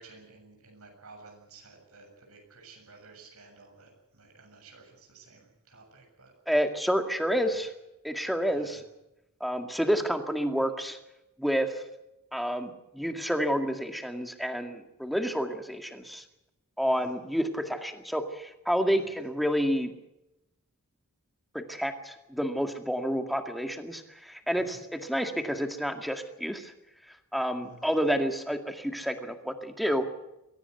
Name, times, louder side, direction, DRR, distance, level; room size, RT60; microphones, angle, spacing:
voice 1, 0.0-6.3 7.3-7.6 8.5-8.8 16.9-17.1 19.0-19.3 24.6-24.8 27.6-27.9, right 3 dB, 75° right, 1 dB, 7.6 m, -53 dB
voice 2, 6.5-7.7 8.0-8.8 9.4-11.0 11.4-11.8 12.3-16.2 16.8-19.9 21.5-26.7 27.3-30.0, equal, ahead, 5 dB, 2.0 m, -29 dB
23.0 x 17.0 x 8.2 m, 0.91 s
head